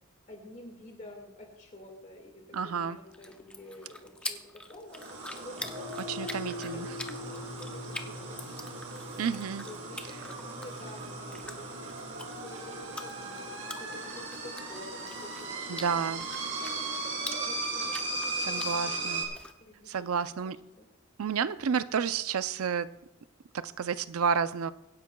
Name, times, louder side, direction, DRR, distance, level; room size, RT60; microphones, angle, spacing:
voice 1, 0.3-5.0 5.4-8.5 9.7-19.3 19.6-20.9, left 1 dB, 35° left, 2 dB, 1.9 m, -49 dB
voice 2, 2.5-3.0 6.1-6.9 9.2-9.7 15.7-16.3 18.4-19.2 19.9-20.6 21.2-22.9 23.5-24.7, right 6 dB, 80° right, 14 dB, 0.5 m, -30 dB
sound 1, 2.9-19.5, left 1 dB, 5° left, 0.5 m, -46 dB
sound 2, 4.9-19.3, right 3 dB, 65° right, 2.9 m, -38 dB
sound 3, 5.6-14.1, left 1 dB, 25° right, 2.2 m, -44 dB
24.0 x 10.5 x 2.3 m, 0.94 s
head